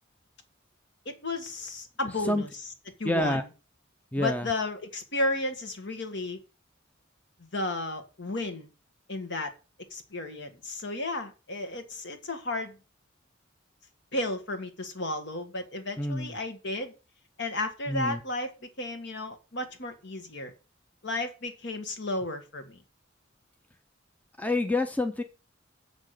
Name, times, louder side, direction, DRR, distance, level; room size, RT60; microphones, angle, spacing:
voice 1, 1.1-2.5 3.0-3.5 4.2-6.4 7.5-8.7 9.1-9.5 9.9-12.8 14.1-16.9 17.4-18.5 18.8-20.5 21.0-22.8, left 2 dB, 60° left, 7 dB, 1.8 m, -33 dB
voice 2, 3.0-3.4 4.1-4.5 16.0-16.3 17.9-18.2 24.4-25.2, left 1 dB, 10° left, 7 dB, 0.6 m, -27 dB
7.5 x 6.1 x 6.5 m, 0.31 s
head